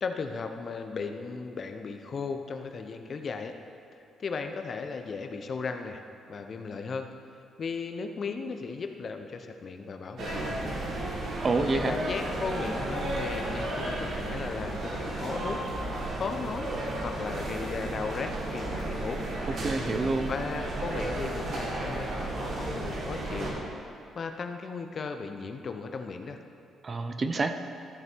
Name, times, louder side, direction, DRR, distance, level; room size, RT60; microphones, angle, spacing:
voice 1, 0.0-3.5 3.9-6.0 6.3-7.1 7.6-10.9 11.8-15.6 15.9-16.7 17.0-19.3 20.3-23.5 24.1-26.4, left 4 dB, 45° left, 6 dB, 0.8 m, -36 dB
sound 1, 10.2-23.5, right 1 dB, 60° right, 2.0 m, -33 dB
voice 2, 11.4-11.9 19.6-20.3 26.8-27.5, right 3 dB, 35° right, 7 dB, 0.6 m, -27 dB
13.5 x 6.5 x 4.5 m, 2.5 s
cardioid pair, 90°, 0 cm